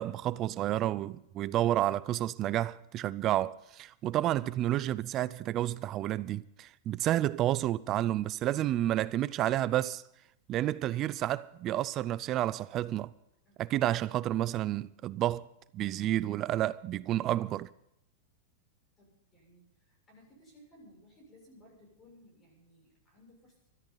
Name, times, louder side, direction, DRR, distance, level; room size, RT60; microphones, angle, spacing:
voice 1, 0.0-10.0 10.5-13.1 13.6-15.5 15.7-17.7, right 13 dB, 30° right, 0.4 m, -30 dB
voice 2, 19.0-23.7, equal, 15° left, 7.1 m, -59 dB
21.0 x 13.5 x 4.0 m
supercardioid pair, 155°, 0 cm